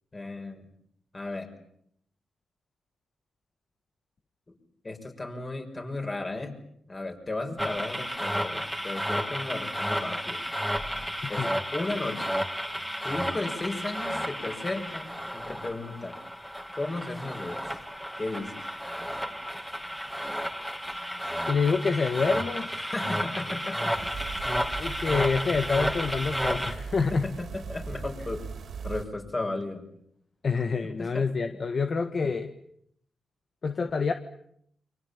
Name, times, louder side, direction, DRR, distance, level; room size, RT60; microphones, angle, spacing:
voice 1, 0.1-0.7 1.1-1.5 4.5-4.6 4.8-6.6 6.9-10.4 11.3-11.4 11.7-12.3 13.0-16.2 16.7-17.6 18.2-18.5 22.8-24.1 27.0-28.4 28.8-29.8 31.0-31.2, left 2 dB, 30° left, 4 dB, 6.3 m, -34 dB
sound 1, 7.6-26.7, equal, ahead, 3.1 m, -32 dB
voice 2, 21.5-22.7 24.8-27.2 30.4-32.5 33.6-34.1, left 4 dB, 50° left, 7 dB, 1.6 m, -27 dB
sound 2, 23.9-29.0, right 5 dB, 65° right, 3.8 m, -39 dB
29.5 x 25.0 x 7.4 m, 0.72 s
cardioid pair, 80°, 0 cm